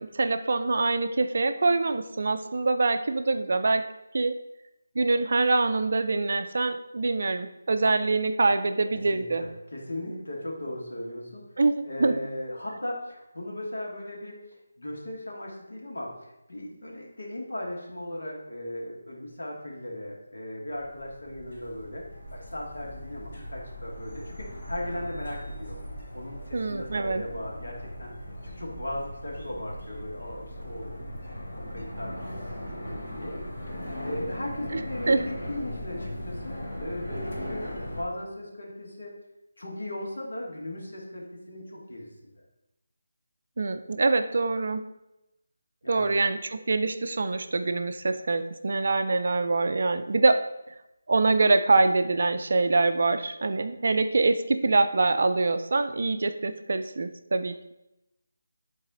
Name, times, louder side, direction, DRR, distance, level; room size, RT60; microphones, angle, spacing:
voice 1, 0.0-3.9 4.1-4.3 5.0-9.4 11.6-12.1 26.5-27.2 35.1-35.2 43.6-44.8 45.9-50.4 51.1-57.7, right 3 dB, 45° right, 9 dB, 0.4 m, -24 dB
voice 2, 9.1-11.5 11.8-14.4 14.8-25.8 26.1-28.1 28.4-31.0 31.5-33.4 34.0-39.2 39.6-42.3 45.8-46.2, left 1 dB, 85° left, -3 dB, 2.5 m, -37 dB
sound 1, 20.7-38.0, equal, 45° left, 1.9 m, -39 dB
11.0 x 4.1 x 3.8 m, 0.90 s
figure-of-eight pair, 180°, 0 cm